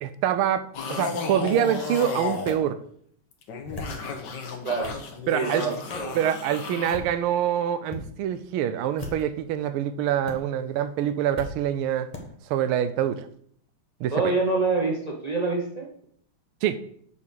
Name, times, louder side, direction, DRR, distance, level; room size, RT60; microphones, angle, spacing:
voice 1, 0.0-2.8 5.3-5.6 6.1-12.1 12.5-13.3 14.0-14.3 16.6-16.8, right 10 dB, 80° right, 12 dB, 1.5 m, -25 dB
sound 1, 0.7-2.6 3.3-7.0, left 4 dB, 60° left, 1.6 m, -33 dB
sound 2, 1.5-1.6 2.5-2.6 3.5-4.0 4.5-5.0 5.9-6.1 6.8-7.1 7.8-8.0 8.9-9.4 10.2-10.3 11.3-11.5 12.1-12.2, left 2 dB, 20° left, 1.2 m, -38 dB
voice 2, 5.3-6.1 14.1-15.9, right 3 dB, 55° right, -1 dB, 0.4 m, -26 dB
7.1 x 4.2 x 6.6 m, 0.63 s
omnidirectional pair, 2.4 m